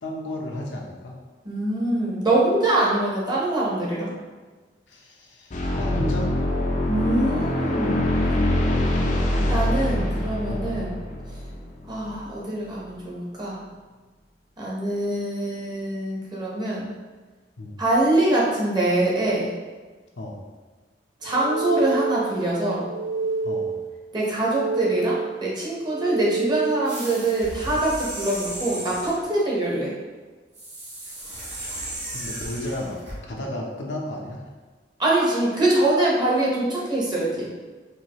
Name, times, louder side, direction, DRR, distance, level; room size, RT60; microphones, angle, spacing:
voice 1, 0.0-1.1 4.9-6.3 10.0-10.1 10.5-11.0 17.6-17.8 20.2-20.4 23.4-23.7 31.1-31.2 32.1-34.4, left 1 dB, 85° left, -2 dB, 0.8 m, -33 dB
voice 2, 1.4-4.1 6.9-8.1 9.5-10.9 11.9-13.6 14.6-16.9 17.8-19.5 21.2-22.8 24.1-29.9 35.0-37.5, right 2 dB, 25° right, -5 dB, 1.0 m, -24 dB
sound 1, 5.5-12.2, left 1 dB, 45° left, 0.5 m, -24 dB
sound 2, 21.3-22.4 22.8-23.9 24.3-25.4 25.8-27.0, right 3 dB, 85° right, 0.3 m, -28 dB
sound 3, 26.9-29.3 30.5-33.2, right 1 dB, 40° right, 1.2 m, -35 dB
4.6 x 2.8 x 3.0 m, 1.4 s
head